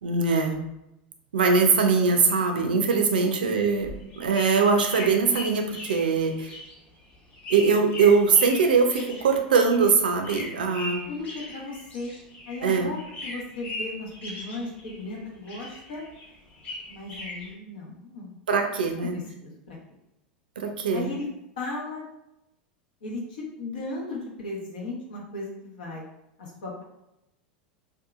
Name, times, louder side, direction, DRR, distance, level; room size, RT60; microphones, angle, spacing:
voice 1, 0.0-0.6 1.3-6.5 7.5-11.0 12.6-12.9 18.5-19.2 20.6-21.1, right 5 dB, 75° right, 4 dB, 0.4 m, -22 dB
sound 1, 3.7-12.7 12.9-15.2 15.4-17.5, left 1 dB, 35° left, 1.0 m, -39 dB
voice 2, 11.1-12.1 12.5-13.0 13.2-16.0 16.9-18.3 19.0-19.8 20.9-21.3 21.6-22.1 23.0-26.0 26.4-26.8, left 2 dB, 70° left, -3 dB, 0.8 m, -36 dB
2.7 x 2.3 x 2.3 m, 0.88 s
hypercardioid pair, 85°, 5 cm